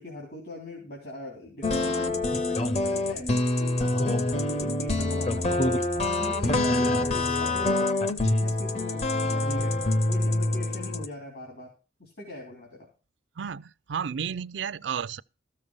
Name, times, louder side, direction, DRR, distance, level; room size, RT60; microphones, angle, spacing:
voice 1, 0.0-11.7 12.0-12.9, left 2 dB, 65° left, 3.2 m, -41 dB
sound 1, 1.6-11.1, left 2 dB, 35° left, 0.7 m, -26 dB
voice 2, 13.4-15.2, right 7 dB, 85° right, 0.4 m, -32 dB
13.5 x 6.7 x 5.3 m
head